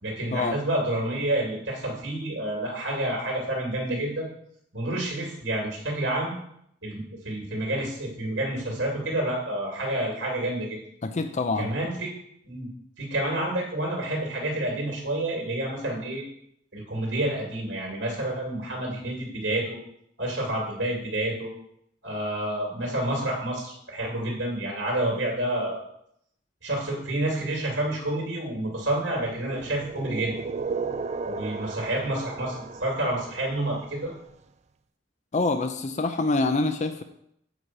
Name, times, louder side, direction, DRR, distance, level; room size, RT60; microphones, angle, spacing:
voice 1, 0.0-4.3 4.7-6.3 6.8-10.8 11.6-12.1 12.4-12.7 13.0-16.2 16.7-19.8 20.2-21.5 22.0-25.8 26.6-30.3 31.2-34.1, right 1 dB, 80° right, -2 dB, 2.4 m, -29 dB
voice 2, 11.0-11.8 35.3-37.0, left 3 dB, 40° left, 8 dB, 0.5 m, -26 dB
sound 1, 29.2-34.1, right 4 dB, 40° right, 0.4 m, -35 dB
8.1 x 4.8 x 6.0 m, 0.73 s
head